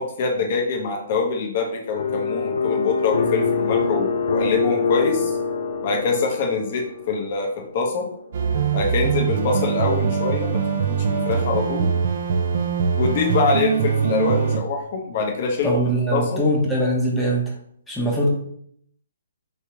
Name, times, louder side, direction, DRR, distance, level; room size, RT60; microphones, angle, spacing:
voice 1, 0.2-5.3 5.8-7.5 7.7-8.1 8.7-11.9 13.0-16.5, left 4 dB, 45° left, 2 dB, 1.0 m, -24 dB
sound 1, 1.9-7.1, left 5 dB, 80° left, 0.6 m, -24 dB
sound 2, 8.3-14.6, right 6 dB, 55° right, 0.6 m, -22 dB
voice 2, 15.6-17.5 17.9-18.3, right 1 dB, 5° left, -3 dB, 1.0 m, -21 dB
3.3 x 3.3 x 2.9 m, 0.68 s
hypercardioid pair, 140°, 0 cm